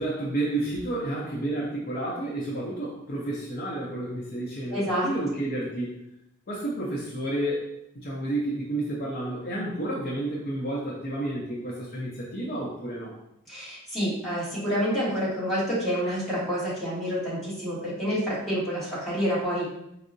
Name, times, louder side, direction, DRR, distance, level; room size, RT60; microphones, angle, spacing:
voice 1, 0.0-6.0 6.5-7.7 7.9-13.1, right 1 dB, 45° left, -4 dB, 0.6 m, -30 dB
voice 2, 4.7-5.1 13.5-19.7, equal, ahead, -9 dB, 1.2 m, -28 dB
4.4 x 2.0 x 2.6 m, 0.82 s
head